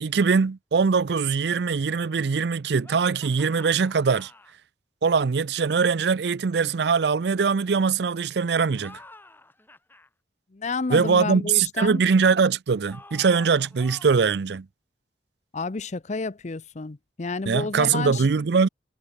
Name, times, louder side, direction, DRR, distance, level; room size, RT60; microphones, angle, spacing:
voice 1, 0.0-4.3 5.0-9.0 10.9-14.7 17.5-18.7, right 5 dB, 65° right, 0.5 m, -22 dB
sound 1, 2.8-4.5 8.7-10.1 12.9-14.4, left 2 dB, 10° left, 5.1 m, -49 dB
voice 2, 10.5-12.0 15.5-18.3, left 3 dB, 40° left, 0.6 m, -30 dB
head